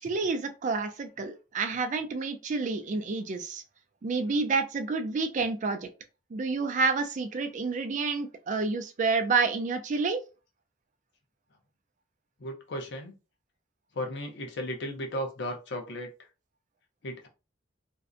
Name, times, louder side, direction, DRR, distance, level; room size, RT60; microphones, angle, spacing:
voice 1, 0.0-3.6 4.0-5.9 6.3-10.2, right 4 dB, 40° right, 8 dB, 0.4 m, -29 dB
voice 2, 12.4-13.1 13.9-16.3 17.0-17.3, equal, 65° left, 3 dB, 0.6 m, -35 dB
2.6 x 2.1 x 2.4 m, 0.31 s
head